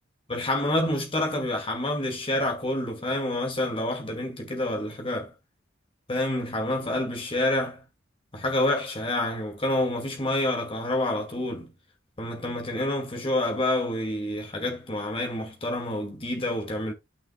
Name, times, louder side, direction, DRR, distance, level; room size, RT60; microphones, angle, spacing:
voice 1, 0.3-5.3 6.1-7.8 8.3-11.7 12.2-16.9, left 1 dB, 30° left, 2.3 m, -28 dB
11.5 x 6.2 x 2.3 m
head